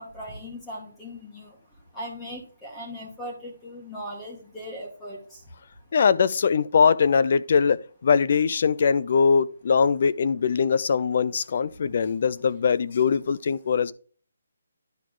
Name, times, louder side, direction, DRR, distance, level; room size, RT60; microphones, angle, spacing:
voice 1, 0.0-1.5 1.9-5.2, equal, 10° left, 2.5 m, -38 dB
voice 2, 5.9-13.9, left 6 dB, 45° left, 0.5 m, -22 dB
10.5 x 4.6 x 3.8 m
hypercardioid pair, 165°, 0 cm